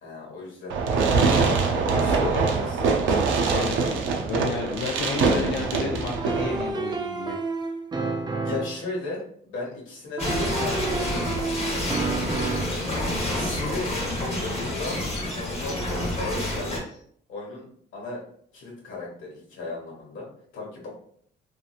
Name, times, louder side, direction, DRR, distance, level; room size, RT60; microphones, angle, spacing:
voice 1, 0.0-2.9 8.4-11.1 12.2-12.9 13.3-13.9 14.4-16.8 17.3-17.7 17.9-18.2 18.5-20.3 20.5-20.9, left 3 dB, 80° left, -3 dB, 1.2 m, -36 dB
Fireworks, 0.7-6.7, right 4 dB, 80° right, 0.5 m, -23 dB
voice 2, 3.5-7.4, left 5 dB, 60° left, 0 dB, 0.5 m, -32 dB
sound 1, 6.2-8.8 10.2-12.8, right 3 dB, 20° right, 0.4 m, -30 dB
sound 2, 10.2-16.8, left 1 dB, 35° left, 1.1 m, -28 dB
2.8 x 2.5 x 2.4 m, 0.62 s
cardioid pair, 90°, 20 cm